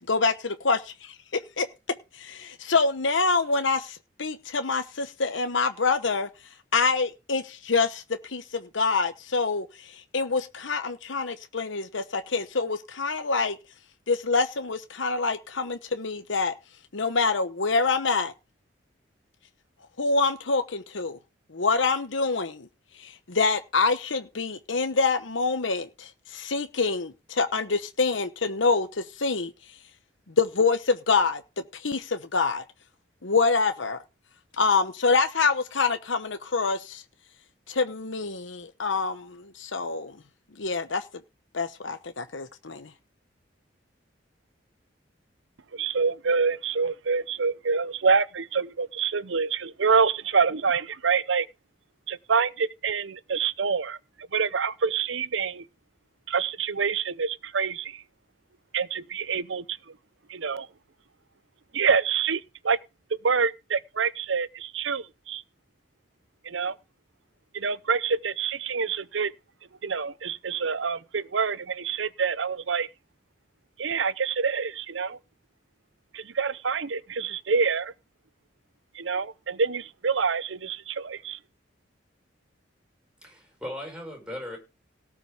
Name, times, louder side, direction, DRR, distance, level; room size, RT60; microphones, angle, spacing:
voice 1, 0.1-1.1 1.6-1.7 2.1-6.3 6.7-13.6 14.1-16.5 16.9-18.3 20.0-21.2 21.5-22.7 23.0-29.5 30.4-31.4 31.7-32.6 33.2-34.0 34.6-37.0 37.7-40.2 40.6-41.0 41.5-42.9, left 4 dB, 80° left, 1.1 m, -26 dB
voice 2, 45.7-51.5 52.1-54.0 54.3-55.6 56.3-58.0 58.7-59.8 60.3-60.7 61.7-62.8 63.2-65.4 66.4-66.8 67.5-69.3 69.8-72.9 73.8-75.2 76.1-77.9 78.9-81.4, right 5 dB, 80° right, 0.7 m, -26 dB
voice 3, 83.2-84.6, left 1 dB, 5° right, 5.4 m, -37 dB
18.0 x 6.0 x 4.9 m
head